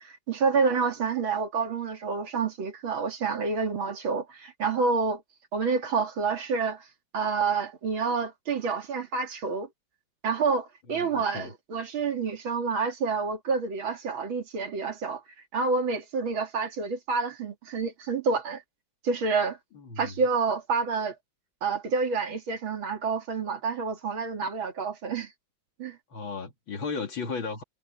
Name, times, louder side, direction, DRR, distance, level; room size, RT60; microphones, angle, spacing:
voice 1, 0.0-5.2 5.5-6.8 7.1-9.7 10.2-15.2 15.5-18.6 19.0-19.6 20.0-21.1 21.6-25.3 25.8-26.0, right 5 dB, 85° right, 3.1 m, -28 dB
voice 2, 10.9-11.5 19.7-20.1 26.1-27.6, left 4 dB, 80° left, 3.2 m, -35 dB
omnidirectional pair, 2.2 m